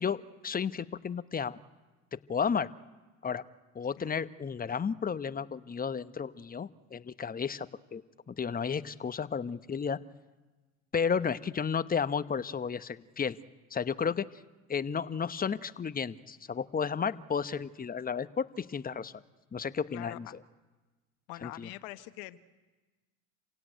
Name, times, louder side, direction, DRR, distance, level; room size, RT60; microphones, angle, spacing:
voice 1, 0.0-1.6 2.1-2.7 3.2-3.4 3.7-8.0 8.3-10.0 10.9-13.4 13.7-14.2 14.7-19.1 19.5-20.3 21.4-21.7, left 6 dB, 20° left, 13 dB, 1.1 m, -33 dB
voice 2, 19.9-20.3 21.3-22.4, left 18 dB, 70° left, 13 dB, 1.3 m, -44 dB
28.0 x 17.0 x 9.3 m, 1.2 s
hypercardioid pair, 80°, 39 cm